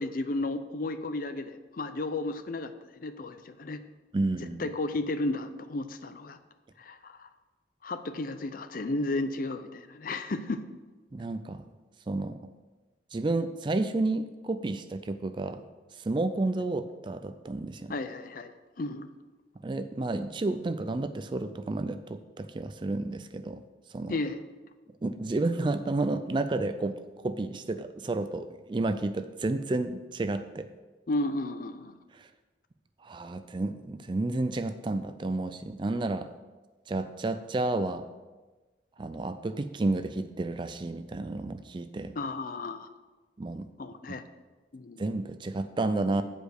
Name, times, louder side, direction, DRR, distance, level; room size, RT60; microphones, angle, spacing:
voice 1, 0.0-3.8 4.4-6.4 6.8-7.3 7.8-10.6 17.9-19.1 24.1-24.4 31.1-31.9 42.2-42.9 43.8-44.2 44.7-45.0, left 2 dB, 50° left, 10 dB, 0.5 m, -33 dB
voice 2, 4.1-4.7 11.1-11.6 12.1-12.4 13.1-15.6 16.0-18.0 19.6-23.6 23.9-24.2 25.0-30.7 32.2-32.3 33.0-36.3 36.9-38.1 39.0-42.2 43.4-43.7 44.1-44.2 45.0-46.2, right 2 dB, 25° right, 10 dB, 0.4 m, -31 dB
8.3 x 5.0 x 6.5 m, 1.2 s
head